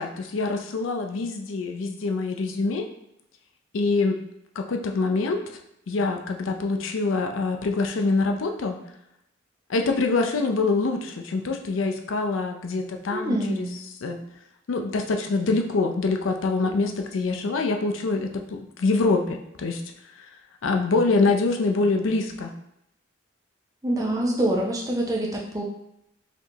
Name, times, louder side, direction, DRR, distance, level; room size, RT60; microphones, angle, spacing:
voice 1, 0.0-2.9 3.7-4.2 4.6-5.4 5.9-8.8 9.7-13.7 14.0-14.2 14.7-19.8 20.2-20.3 20.6-22.5, left 3 dB, 80° left, 4 dB, 0.5 m, -25 dB
voice 2, 13.1-13.7 23.8-25.6, right 1 dB, 20° right, -1 dB, 0.5 m, -25 dB
4.2 x 2.7 x 2.9 m, 0.81 s
head